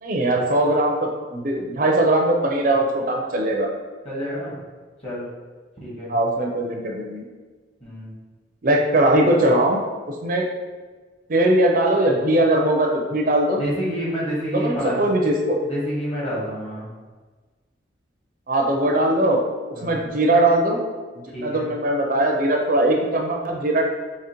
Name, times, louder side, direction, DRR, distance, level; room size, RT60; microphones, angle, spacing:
voice 1, 0.0-3.7 6.1-7.2 8.6-9.8 10.2-10.5 11.3-13.6 14.5-15.6 18.5-19.4 19.8-20.8 21.4-23.8, right 1 dB, 45° right, 1 dB, 0.5 m, -20 dB
voice 2, 4.0-4.5 5.0-5.2 5.8-6.1 7.8-8.1 13.6-15.1 15.6-16.9 19.7-20.0 21.3-21.7, equal, 30° left, -6 dB, 1.4 m, -28 dB
4.9 x 2.9 x 2.9 m, 1.4 s
head